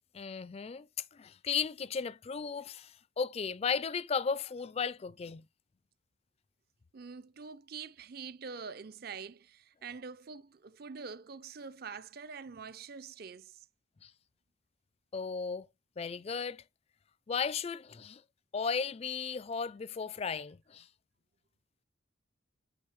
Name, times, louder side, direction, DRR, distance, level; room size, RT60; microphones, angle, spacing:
voice 1, 0.1-0.9 1.1-5.4 14.0-14.1 15.1-15.7 16.0-16.6 17.3-18.2 18.5-20.9, left 6 dB, 30° left, 0.3 m, -35 dB
voice 2, 6.9-13.5, right 5 dB, 50° right, 0.5 m, -45 dB
8.7 x 4.0 x 3.1 m
head